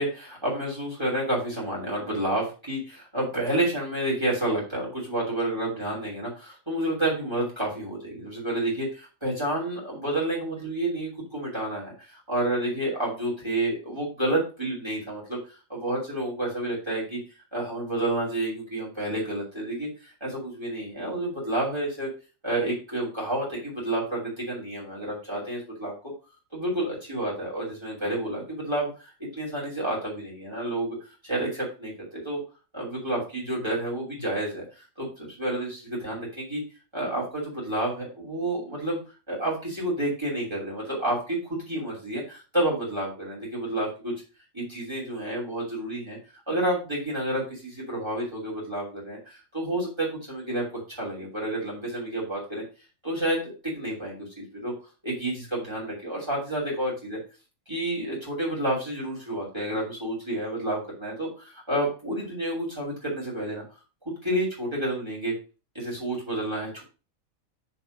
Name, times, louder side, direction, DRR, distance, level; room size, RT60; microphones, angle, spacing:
voice 1, 0.0-17.2 17.5-22.1 22.4-25.9 26.5-32.4 32.7-36.6 36.9-39.0 39.3-44.1 44.5-46.2 46.5-52.6 53.0-54.7 55.0-57.2 57.7-63.6 64.0-65.3 65.7-66.8, right 1 dB, 20° right, -4 dB, 3.1 m, -30 dB
6.8 x 4.4 x 4.9 m, 0.33 s
omnidirectional pair, 1.5 m